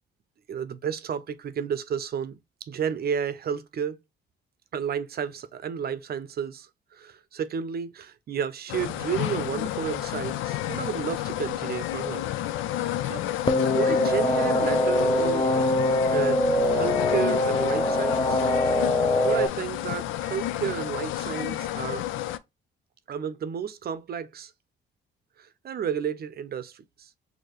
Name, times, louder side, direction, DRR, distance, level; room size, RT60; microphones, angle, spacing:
voice 1, 0.5-4.0 4.7-6.7 6.9-12.3 13.1-13.2 13.7-15.5 16.1-18.4 19.2-22.0 23.1-24.5 25.6-26.8, right 7 dB, 50° right, 0.6 m, -32 dB
sound 1, 8.7-22.4, left 13 dB, 90° left, 0.4 m, -31 dB
sound 2, 13.5-19.5, left 1 dB, 25° left, 0.6 m, -23 dB
4.6 x 2.8 x 2.9 m
cardioid pair, 90°, 20 cm